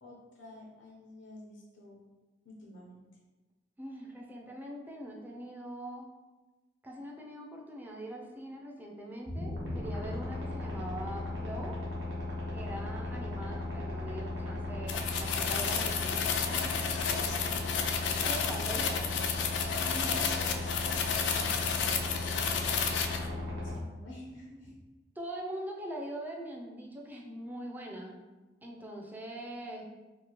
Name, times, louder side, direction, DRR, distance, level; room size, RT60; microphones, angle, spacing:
voice 1, 0.0-2.0 2.4-3.0 16.4-17.9 19.8-22.3 22.8-24.8, left 1 dB, 90° left, -3 dB, 0.7 m, -48 dB
voice 2, 3.8-6.1 6.8-11.8 12.5-16.3 18.2-19.0 25.2-28.2 28.6-29.8, right 1 dB, 10° right, -1 dB, 0.4 m, -42 dB
sound 1, 9.3-23.8, left 2 dB, 75° right, 0.9 m, -37 dB
sound 2, 14.9-23.3, left 6 dB, 70° left, 0.3 m, -31 dB
2.8 x 2.3 x 2.9 m, 1.2 s
head